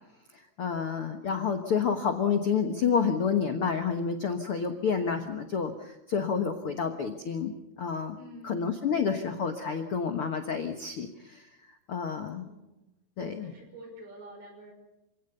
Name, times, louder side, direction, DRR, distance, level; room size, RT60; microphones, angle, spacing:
voice 1, 0.6-8.2 8.4-11.5 11.9-12.4 13.2-13.5, left 6 dB, 65° left, 6 dB, 1.3 m, -29 dB
voice 2, 8.1-9.1 12.1-12.9 13.2-14.7, right 1 dB, 75° right, 2 dB, 7.9 m, -49 dB
27.5 x 17.0 x 6.9 m, 0.94 s
omnidirectional pair, 4.5 m